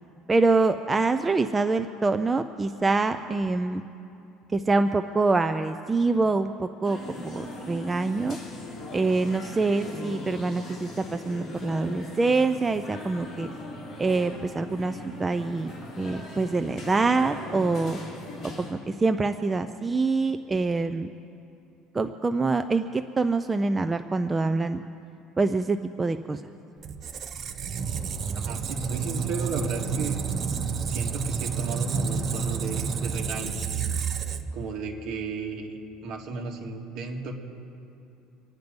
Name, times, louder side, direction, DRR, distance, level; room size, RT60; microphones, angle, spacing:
voice 1, 0.3-3.8 4.5-8.4 8.9-13.5 14.0-15.7 16.0-18.0 18.7-21.1 21.9-24.8 25.4-26.4, right 3 dB, 15° right, 8 dB, 0.4 m, -25 dB
sound 1, 6.8-18.7, left 2 dB, 35° left, 3.7 m, -39 dB
Squeak, 26.8-34.7, right 6 dB, 35° right, 0.7 m, -30 dB
voice 2, 28.3-30.2 30.8-33.6 34.5-37.3, right 4 dB, 55° right, 1 dB, 2.0 m, -34 dB
25.5 x 9.4 x 5.3 m, 2.8 s
cardioid pair, 150°, 0 cm